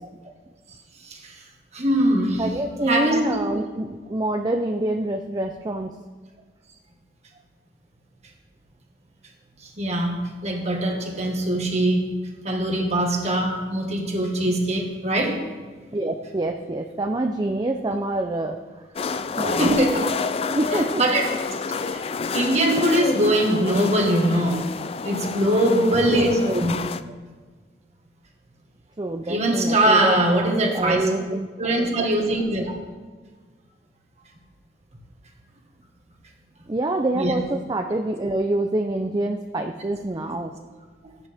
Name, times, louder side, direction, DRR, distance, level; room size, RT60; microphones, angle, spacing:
voice 1, 1.0-1.4 1.7-2.4 2.9-3.5 9.8-12.0 12.4-15.4 19.6-20.1 21.0-21.3 21.8-22.0 22.3-24.6 25.0-26.7 29.3-31.1 31.6-32.7 37.1-37.3, right 1 dB, 40° right, 1 dB, 1.7 m, -22 dB
voice 2, 2.4-5.9 15.9-18.6 19.3-19.8 20.5-21.0 25.7-26.5 29.0-31.5 36.7-40.5, right 2 dB, 25° right, 4 dB, 0.5 m, -26 dB
sound 1, 19.0-27.0, left 4 dB, 35° left, 0.4 m, -29 dB
14.5 x 10.0 x 3.5 m, 1.4 s
head